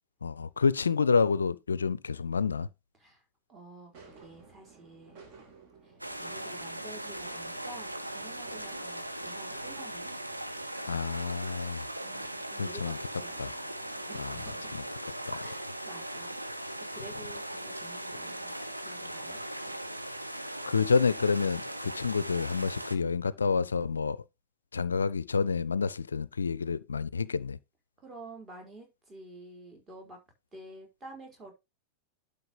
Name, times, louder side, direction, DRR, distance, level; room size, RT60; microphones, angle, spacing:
voice 1, 0.2-2.7 10.9-11.9 12.6-13.0 13.4-13.5 14.2-14.4 14.7-14.8 15.2-15.4 20.7-24.2 24.7-27.6, left 5 dB, 75° left, 0.4 m, -28 dB
voice 2, 3.5-5.2 5.8-10.1 12.0-13.3 14.0-14.8 15.4-19.8 28.0-30.2 30.5-31.5, right 2 dB, 20° right, 4.8 m, -50 dB
sound 1, 3.9-14.0, right 4 dB, 40° right, 3.6 m, -55 dB
sound 2, 6.0-23.0, right 1 dB, 85° right, 1.2 m, -39 dB
12.0 x 5.4 x 3.8 m
figure-of-eight pair, 90°, 0 cm